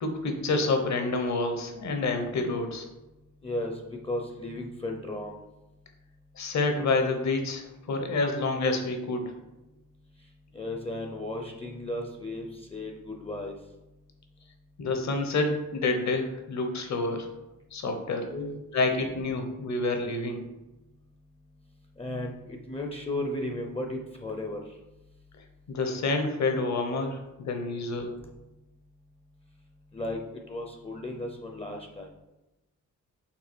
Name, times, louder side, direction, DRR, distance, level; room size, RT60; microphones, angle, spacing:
voice 1, 0.0-2.8 6.4-9.3 14.8-17.3 17.7-18.3 18.7-20.4 25.7-28.1, left 3 dB, 60° left, 5 dB, 1.1 m, -28 dB
voice 2, 3.4-5.4 10.5-13.5 18.3-18.6 22.0-24.6 29.9-32.1, left 1 dB, 20° left, 2 dB, 0.6 m, -35 dB
5.9 x 3.7 x 4.3 m, 0.99 s
wide cardioid pair, 125°, 31 cm